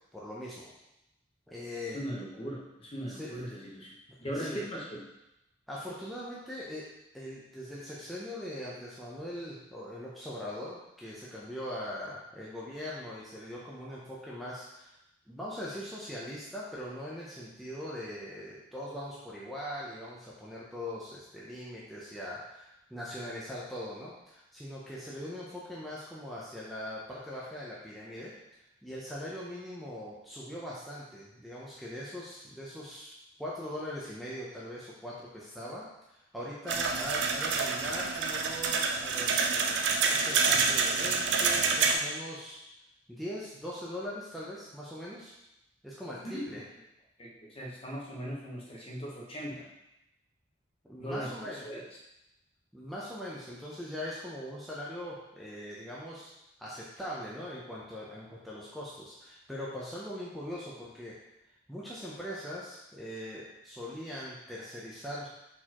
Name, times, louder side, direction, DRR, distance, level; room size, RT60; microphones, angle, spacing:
voice 1, 0.1-0.7 1.5-2.0 3.1-3.3 4.3-4.6 5.7-6.9 7.1-15.0 15.3-28.3 28.8-33.1 33.4-39.8 40.1-42.6 43.1-45.3 45.8-46.6 50.8-51.6 52.7-56.3 56.6-61.1 61.7-65.3, left 1 dB, ahead, -7 dB, 0.6 m, -41 dB
voice 2, 1.9-5.0 46.2-46.4 47.2-49.7 51.0-51.8, equal, 30° left, -3 dB, 1.0 m, -39 dB
sound 1, 36.7-41.9, right 5 dB, 65° right, 0.5 m, -27 dB
4.4 x 4.1 x 2.9 m, 0.88 s
head